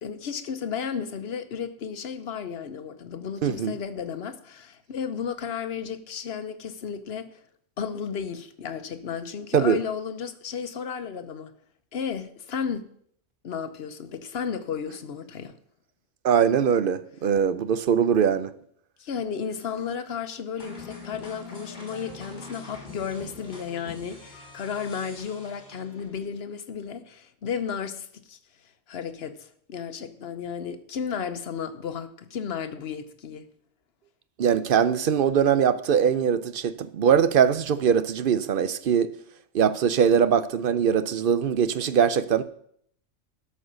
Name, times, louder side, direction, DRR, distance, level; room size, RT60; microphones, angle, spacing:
voice 1, 0.0-7.4 7.8-11.5 11.9-12.9 13.4-15.6 19.0-28.4 28.9-33.5, left 7 dB, 55° left, 1.1 m, -33 dB
voice 2, 3.4-3.7 9.5-9.8 16.2-18.5 34.4-39.1 39.5-42.4, right 8 dB, 55° right, 0.7 m, -22 dB
sound 1, 20.6-26.3, left 3 dB, 35° left, 2.3 m, -44 dB
12.5 x 5.6 x 6.6 m
omnidirectional pair, 1.3 m